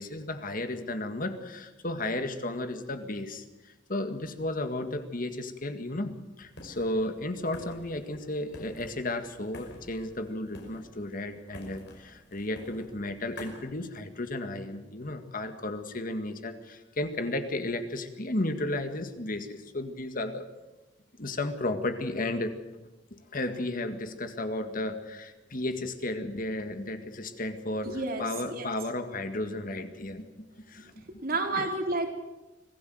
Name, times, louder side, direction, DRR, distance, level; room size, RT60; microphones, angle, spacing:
voice 1, 0.0-20.5 21.2-22.5 23.3-30.2 30.7-30.9 31.6-31.7, left 2 dB, 50° left, 8 dB, 1.9 m, -33 dB
sound 1, 6.4-13.7, left 1 dB, 65° left, 5.5 m, -50 dB
voice 2, 27.8-28.7 31.2-32.1, right 2 dB, 50° right, 3 dB, 4.0 m, -30 dB
25.5 x 16.5 x 7.9 m, 1.1 s
head